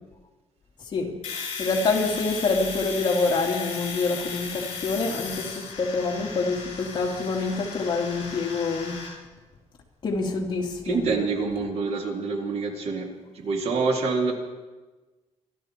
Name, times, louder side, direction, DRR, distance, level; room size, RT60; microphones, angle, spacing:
voice 1, 0.8-1.1 1.6-8.9 10.0-11.0, left 3 dB, 35° left, 0 dB, 2.5 m, -26 dB
Domestic sounds home sounds, 1.2-9.1, left 5 dB, 60° left, 6.8 m, -36 dB
voice 2, 10.8-13.1 13.3-14.3, right 4 dB, 55° right, 3 dB, 2.2 m, -26 dB
26.0 x 12.5 x 4.4 m, 1.2 s
cardioid pair, 165°, 13 cm